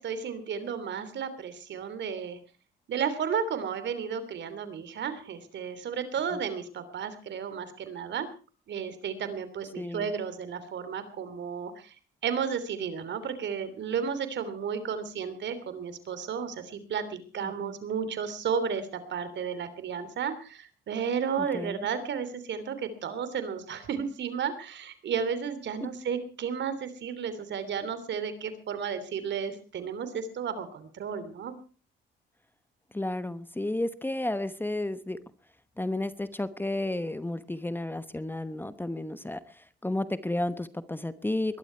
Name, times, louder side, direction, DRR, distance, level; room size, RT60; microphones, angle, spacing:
voice 1, 0.0-2.4 2.9-8.3 8.7-11.9 12.2-31.5, right 7 dB, 65° right, 12 dB, 3.3 m, -33 dB
voice 2, 9.8-10.1 17.4-17.7 21.5-21.9 32.9-35.2 35.8-39.4 39.8-41.6, left 1 dB, 10° left, 13 dB, 1.1 m, -32 dB
21.5 x 11.5 x 4.6 m, 0.37 s
cardioid pair, 90°, 20 cm